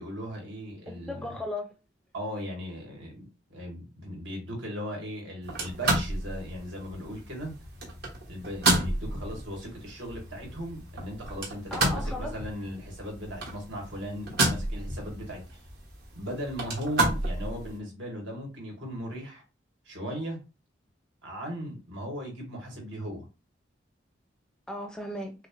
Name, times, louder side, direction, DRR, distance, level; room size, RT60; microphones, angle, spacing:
voice 1, 0.0-1.3 2.1-7.5 8.3-15.6 16.1-19.4 19.9-20.4 21.2-23.3, equal, 75° right, 2.0 m, -38 dB
voice 2, 0.9-1.7 11.7-12.3 24.7-25.3, left 1 dB, 5° left, 0.5 m, -36 dB
sound 1, 5.4-17.8, right 2 dB, 55° right, 1.3 m, -31 dB
6.0 x 2.1 x 3.3 m
head